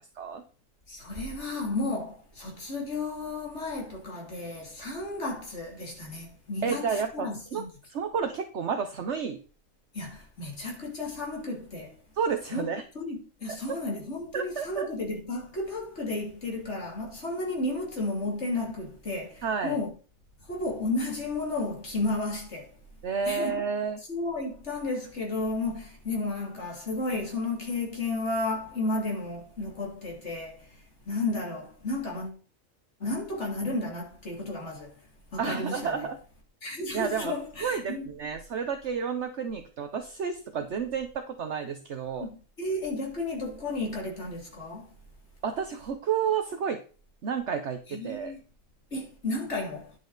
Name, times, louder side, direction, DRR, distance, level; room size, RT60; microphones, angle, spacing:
voice 1, 0.9-7.7 9.9-12.0 12.5-19.9 20.4-22.8 23.2-23.6 24.1-32.4 33.0-35.0 35.3-36.1 36.6-38.0 42.2-44.9 47.9-48.4 48.9-50.0, left 2 dB, 55° left, 3.2 m, -33 dB
voice 2, 6.6-7.6 7.9-9.4 12.2-12.8 14.3-14.9 19.4-19.8 23.0-24.0 35.4-36.2 36.9-37.3 37.6-42.3 45.4-46.8 47.2-48.3, right 6 dB, 60° right, 1.2 m, -31 dB
10.5 x 6.9 x 4.0 m
omnidirectional pair, 1.4 m